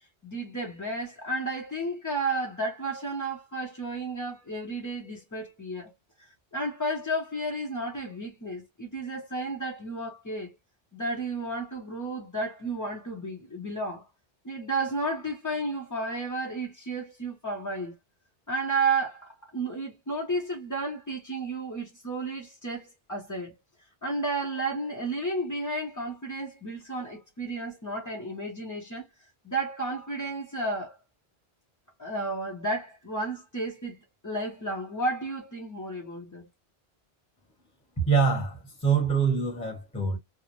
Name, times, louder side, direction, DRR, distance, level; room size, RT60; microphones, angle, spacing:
voice 1, 0.2-5.9 6.2-10.5 10.9-14.1 14.4-17.9 18.5-23.5 24.0-29.1 29.4-31.0 32.0-34.0 34.2-36.5, right 2 dB, 25° left, 0.5 m, -32 dB
voice 2, 38.0-40.2, right 5 dB, 5° left, 0.9 m, -25 dB
2.4 x 2.0 x 2.9 m
omnidirectional pair, 1.1 m